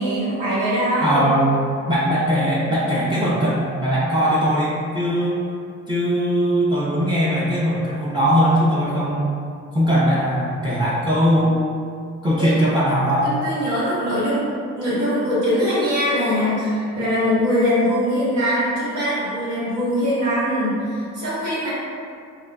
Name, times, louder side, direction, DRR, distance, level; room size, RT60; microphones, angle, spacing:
voice 1, 0.0-1.2 12.4-12.7 13.2-14.5 14.8-21.7, equal, 85° right, -10 dB, 1.3 m, -22 dB
voice 2, 1.0-1.6 1.9-5.4 5.9-9.3 9.7-11.6 12.2-13.3, equal, 15° right, -8 dB, 0.6 m, -20 dB
3.7 x 2.3 x 2.3 m, 2.3 s
cardioid pair, 90°, 30 cm